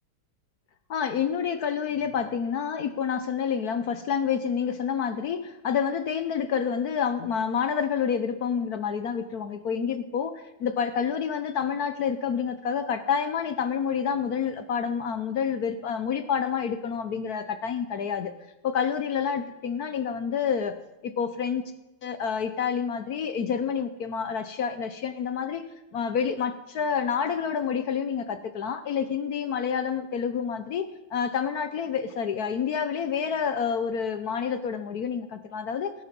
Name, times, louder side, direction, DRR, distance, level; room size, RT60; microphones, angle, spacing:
voice 1, 0.9-18.3 18.6-20.8 21.0-21.6 22.0-25.6 25.9-35.9, left 7 dB, 60° left, 11 dB, 1.0 m, -28 dB
18.0 x 10.0 x 5.2 m, 1.0 s
omnidirectional pair, 2.4 m